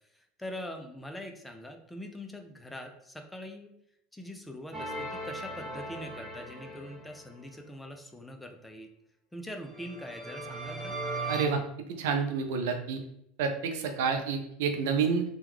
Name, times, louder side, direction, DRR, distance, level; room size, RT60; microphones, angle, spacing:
voice 1, 0.1-3.7 4.1-8.9 9.3-10.9, left 1 dB, 10° left, 4 dB, 0.5 m, -43 dB
sound 1, 4.7-7.4 9.7-11.5, right 2 dB, 15° right, 1.1 m, -38 dB
voice 2, 11.3-11.6 12.0-13.0 13.4-15.2, right 5 dB, 75° right, 5 dB, 0.4 m, -29 dB
3.0 x 2.2 x 3.5 m, 0.77 s
hypercardioid pair, 85°, 0 cm